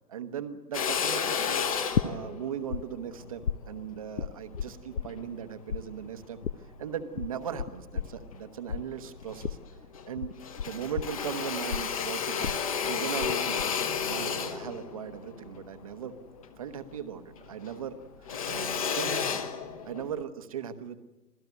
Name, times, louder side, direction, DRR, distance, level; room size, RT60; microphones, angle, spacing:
voice 1, 0.1-6.4 6.8-9.6 10.1-10.3 10.6-13.6 14.1-16.1 16.6-18.0 18.5-19.4 19.8-21.0, right 8 dB, 20° right, 10 dB, 0.9 m, -38 dB
Drill, 0.7-5.3 5.8-7.0 7.5-8.4 8.8-8.9 9.1-10.1 10.4-17.1 17.4-20.2, left 7 dB, 20° left, 1.0 m, -33 dB
sound 1, 1.9-2.8 3.1-5.4 5.7-13.3 13.6-14.1, left 7 dB, 50° left, 0.9 m, -33 dB
26.0 x 16.5 x 9.4 m, 1.1 s
hypercardioid pair, 155°, 50 cm